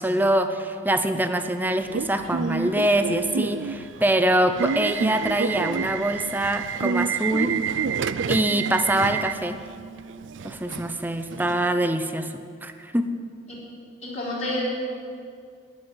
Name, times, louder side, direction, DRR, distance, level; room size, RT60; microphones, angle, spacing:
voice 1, 0.0-7.6 8.3-9.6 10.4-12.3 12.6-13.1, right 1 dB, 10° right, 8 dB, 0.6 m, -24 dB
Subway metro underground / Alarm, 1.8-11.7, right 6 dB, 80° right, 0.4 m, -29 dB
voice 2, 13.7-14.6, left 1 dB, 40° left, -6 dB, 4.1 m, -31 dB
15.0 x 6.4 x 9.8 m, 2.3 s
head